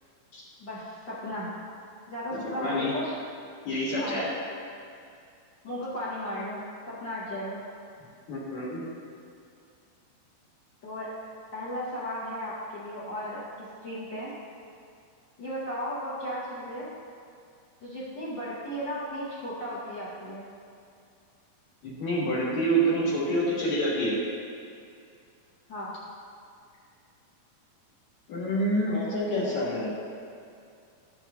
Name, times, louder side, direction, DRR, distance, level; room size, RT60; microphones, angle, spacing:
voice 1, 0.6-1.5 2.1-3.1 4.0-4.2 5.6-7.6 10.8-11.1 11.5-14.3 15.4-16.9 17.8-20.5 25.7-25.9, equal, 45° left, -10 dB, 1.7 m, -35 dB
voice 2, 2.3-2.9 3.7-4.3 8.3-8.8 21.8-24.2 28.3-29.9, right 1 dB, 60° left, -7 dB, 2.6 m, -27 dB
12.0 x 7.3 x 2.7 m, 2.4 s
omnidirectional pair, 3.9 m